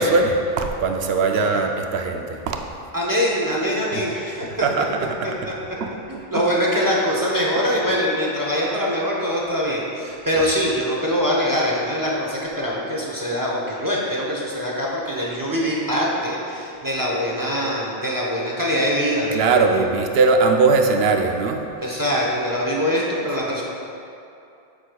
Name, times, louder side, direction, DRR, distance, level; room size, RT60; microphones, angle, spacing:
voice 1, 0.0-2.6 3.9-4.0 4.6-4.9 5.8-5.9 6.3-6.4 19.3-21.6, right 4 dB, 75° right, 4 dB, 0.8 m, -20 dB
voice 2, 2.9-4.7 5.2-5.3 6.1-19.8 21.8-23.6, equal, 25° right, -4 dB, 0.7 m, -23 dB
8.1 x 6.3 x 2.2 m, 2.6 s
omnidirectional pair, 1.1 m